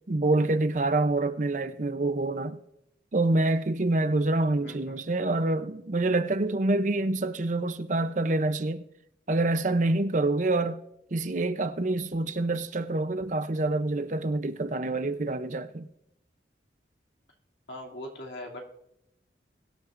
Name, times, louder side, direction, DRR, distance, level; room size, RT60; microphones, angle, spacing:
voice 1, 0.1-2.6 3.1-8.8 9.3-10.8 11.1-15.9, right 2 dB, 45° right, 0.6 m, -26 dB
voice 2, 4.6-5.0 17.7-18.6, left 1 dB, 80° left, 2.7 m, -40 dB
22.5 x 10.5 x 2.6 m
head